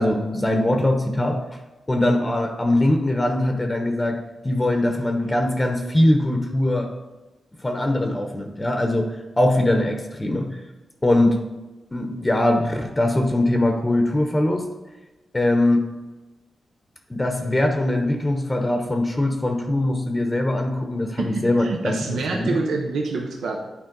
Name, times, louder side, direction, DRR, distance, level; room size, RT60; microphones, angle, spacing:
voice 1, 0.0-1.4 1.9-4.2 4.4-6.9 7.6-10.6 11.0-11.4 11.9-14.7 15.3-15.8 17.1-22.6, left 1 dB, 20° left, 4 dB, 0.8 m, -21 dB
voice 2, 21.2-23.6, right 3 dB, 90° right, 1 dB, 0.8 m, -26 dB
9.1 x 4.3 x 3.8 m, 1.2 s
cardioid pair, 75°, 0 cm